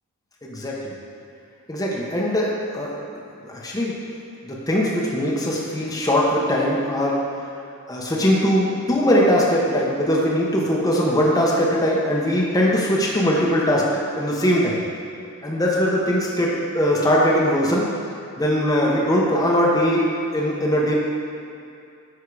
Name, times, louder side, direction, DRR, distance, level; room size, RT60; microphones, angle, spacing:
voice 1, 0.4-0.9 1.7-2.9 3.4-4.0 4.4-7.2 7.9-13.9 14.1-14.8 15.4-17.9 18.4-20.1 20.3-20.9, equal, 15° left, -4 dB, 0.9 m, -20 dB
10.5 x 3.7 x 4.8 m, 2.5 s
head